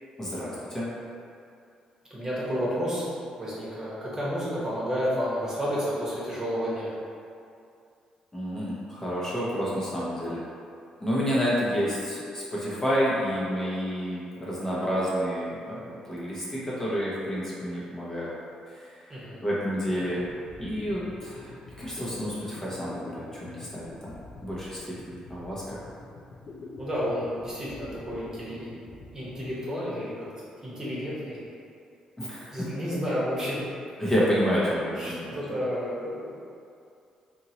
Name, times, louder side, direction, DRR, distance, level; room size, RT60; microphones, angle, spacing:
voice 1, 0.2-0.9 8.3-10.4 11.0-18.3 18.7-18.9 19.4-20.3 20.6-24.8 25.0-25.8 32.2-32.7 34.0-35.4, equal, 20° left, -8 dB, 0.8 m, -29 dB
voice 2, 2.1-6.9 19.1-19.4 26.8-28.7 29.1-30.3 30.6-31.4 32.5-33.6 34.9-36.3, equal, 25° right, -8 dB, 1.1 m, -31 dB
sound 1, 19.7-30.0, left 2 dB, 55° left, 0.5 m, -46 dB
2.8 x 2.6 x 2.9 m, 2.4 s
hypercardioid pair, 50°, 2 cm